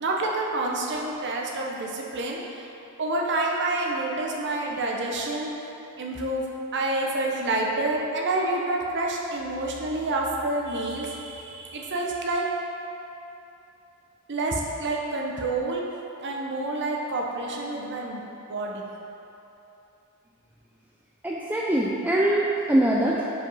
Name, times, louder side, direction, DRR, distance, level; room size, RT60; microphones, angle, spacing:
voice 1, 0.0-2.7 3.0-5.5 6.0-6.5 6.7-12.5 14.3-15.8 16.2-18.2 18.5-18.9, right 2 dB, 55° right, -1 dB, 0.9 m, -28 dB
voice 2, 21.2-23.2, right 1 dB, 10° right, -4 dB, 0.4 m, -23 dB
5.2 x 5.0 x 5.5 m, 2.9 s
head